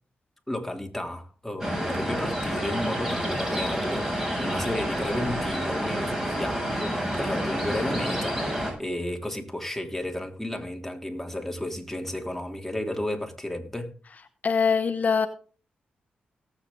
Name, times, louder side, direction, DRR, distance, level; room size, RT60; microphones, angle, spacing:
voice 1, 0.5-13.9, left 1 dB, 5° left, 3.2 m, -33 dB
sound 1, 1.6-8.7, equal, 15° right, 7.3 m, -29 dB
voice 2, 14.4-15.3, left 5 dB, 50° left, 1.0 m, -22 dB
18.5 x 8.1 x 3.8 m
cardioid pair, 60°, 3 cm